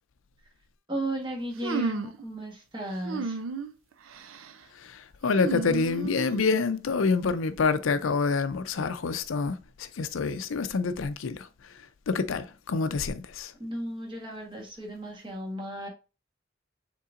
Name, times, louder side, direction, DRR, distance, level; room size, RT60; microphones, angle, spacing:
voice 1, 0.9-3.4 13.6-15.9, right 1 dB, 25° right, 1.3 m, -35 dB
sound 1, 1.6-2.2 3.0-3.7 4.1-4.5 5.3-6.5, right 3 dB, 85° right, 0.5 m, -33 dB
voice 2, 4.7-11.7 12.1-13.5, left 4 dB, 80° left, 0.5 m, -27 dB
5.6 x 3.7 x 2.5 m
head